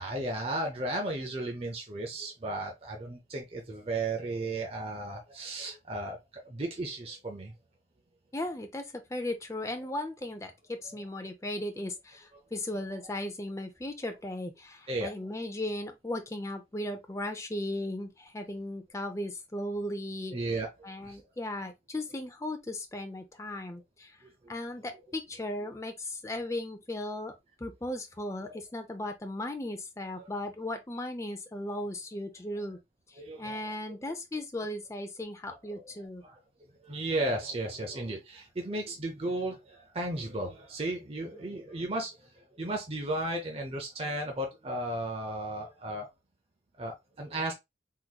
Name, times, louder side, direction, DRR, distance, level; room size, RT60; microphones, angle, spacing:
voice 1, 0.0-7.5 14.9-15.1 20.3-20.7 21.0-21.2 24.2-24.5 28.4-28.6 30.1-30.2 33.2-33.7 35.7-35.8 36.2-36.4 36.8-46.1 46.8-47.5, right 2 dB, 30° right, 0.6 m, -35 dB
voice 2, 8.3-20.3 20.8-24.2 24.5-27.3 27.6-32.8 33.1-36.2 41.4-41.5, left 1 dB, 15° left, 0.5 m, -37 dB
3.8 x 3.0 x 2.2 m
head